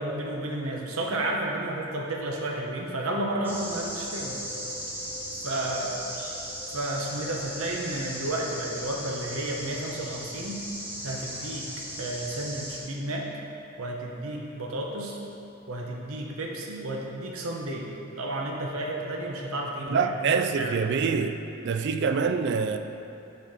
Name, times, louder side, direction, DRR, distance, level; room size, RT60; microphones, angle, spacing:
voice 1, 0.0-4.4 5.4-6.0 6.7-10.6 11.0-11.7 12.0-13.3 13.8-15.2 15.7-17.9 18.2-20.9, right 1 dB, 75° right, -1 dB, 0.8 m, -32 dB
sound 1, 3.4-12.8, equal, 10° right, 0.9 m, -37 dB
voice 2, 19.9-21.4 21.6-22.8, right 5 dB, 50° right, 8 dB, 0.3 m, -25 dB
6.7 x 4.2 x 4.8 m, 2.9 s
head